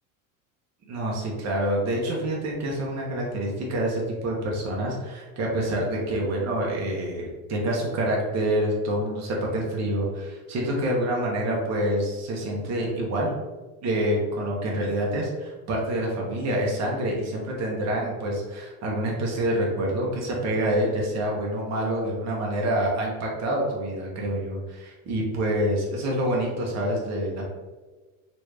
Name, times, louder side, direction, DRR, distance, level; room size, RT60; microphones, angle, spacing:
voice 1, 0.9-13.3 13.8-27.4, right 1 dB, 40° right, -2 dB, 1.0 m, -27 dB
3.0 x 2.6 x 3.3 m, 1.3 s
supercardioid pair, 95°, 42 cm